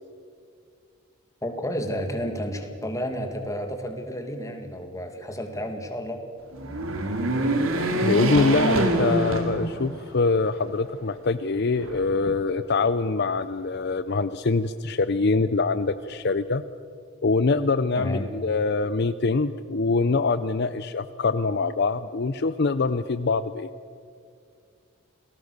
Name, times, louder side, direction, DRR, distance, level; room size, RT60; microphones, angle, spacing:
voice 1, 1.4-6.2 17.9-18.3, equal, 15° left, 5 dB, 2.2 m, -31 dB
sound 1, 6.5-10.1 10.6-10.7 11.8-12.6, right 2 dB, 85° right, 2.8 m, -25 dB
voice 2, 8.0-16.6 17.2-23.7, left 3 dB, 55° left, 12 dB, 0.6 m, -24 dB
28.0 x 18.5 x 6.7 m, 2.3 s
head